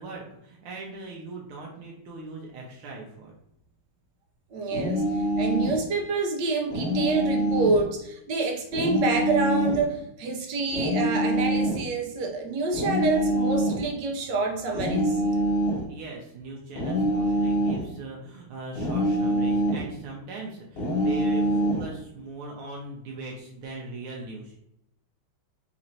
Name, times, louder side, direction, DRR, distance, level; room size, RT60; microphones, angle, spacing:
voice 1, 0.0-3.3 9.9-10.1 15.9-24.5, right 3 dB, 85° right, -2 dB, 1.7 m, -40 dB
voice 2, 4.5-5.0 5.4-15.5, right 3 dB, 65° right, 2 dB, 1.2 m, -27 dB
sound 1, 4.7-5.8 6.7-7.8 8.7-9.8 10.7-11.8 12.7-13.9 14.7-15.9 16.7-17.9 18.7-19.9 20.8-21.9, right 1 dB, 50° left, 0.7 m, -25 dB
4.2 x 2.5 x 4.2 m, 0.78 s
omnidirectional pair, 2.4 m